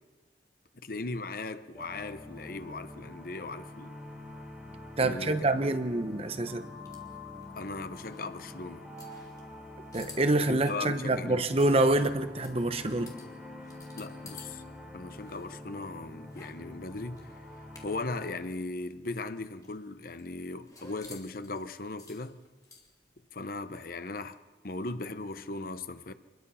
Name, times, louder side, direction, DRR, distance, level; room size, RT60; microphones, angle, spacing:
voice 1, 0.8-4.0 5.0-5.5 7.6-8.9 10.5-11.5 14.0-14.6 14.9-17.5 17.8-22.4 23.3-26.1, left 3 dB, 50° left, 0.9 m, -38 dB
sound 1, 1.7-18.3, left 1 dB, 5° right, 4.1 m, -46 dB
voice 2, 5.0-6.7 9.9-13.2, right 2 dB, 35° right, 0.9 m, -26 dB
sound 2, 5.9-14.6 14.8-18.2 18.5-18.6 18.9-23.2, left 4 dB, 20° left, 2.9 m, -54 dB
25.5 x 21.0 x 5.7 m
head